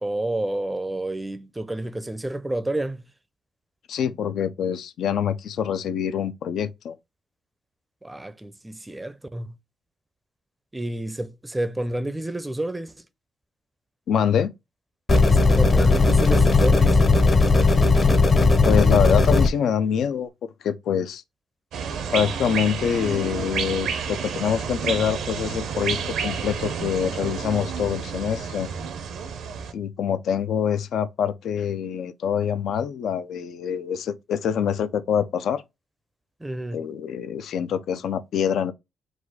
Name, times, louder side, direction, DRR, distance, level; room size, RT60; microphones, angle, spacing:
voice 1, 0.0-3.0 8.0-9.5 10.7-12.9 15.3-17.0 36.4-36.8, right 1 dB, 10° right, 0.5 m, -30 dB
voice 2, 3.9-7.0 14.1-14.5 18.6-20.3 20.6-21.2 22.1-28.7 29.7-35.6 36.7-38.7, left 8 dB, 70° left, 0.5 m, -25 dB
sound 1, 15.1-19.5, left 3 dB, 35° left, 0.8 m, -17 dB
sound 2, 21.7-29.7, right 6 dB, 80° right, 0.7 m, -30 dB
4.0 x 2.4 x 4.6 m
cardioid pair, 90°, 0 cm